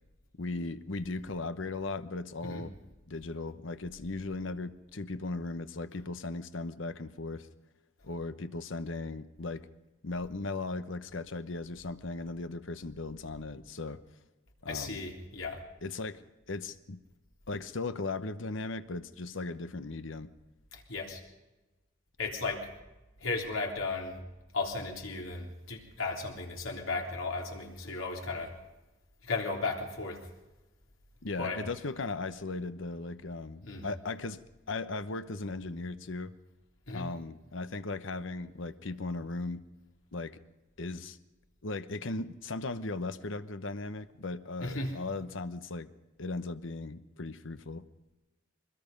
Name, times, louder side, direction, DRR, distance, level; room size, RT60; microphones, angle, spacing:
voice 1, 0.4-2.7 3.1-7.5 8.0-9.7 10.0-14.0 14.6-15.0 15.8-17.0 17.5-20.3 31.2-36.3 36.9-39.7 40.1-40.4 40.8-41.2 41.6-45.9 46.2-47.8, left 3 dB, 70° left, 12 dB, 1.0 m, -37 dB
voice 2, 14.7-15.6 20.7-21.2 22.2-22.7 23.2-24.2 24.5-28.5 29.2-30.2 31.4-31.6 33.7-33.9 36.9-37.1 44.6-44.9, left 3 dB, 90° left, 1 dB, 3.5 m, -35 dB
24.0 x 21.0 x 5.3 m, 1.1 s
head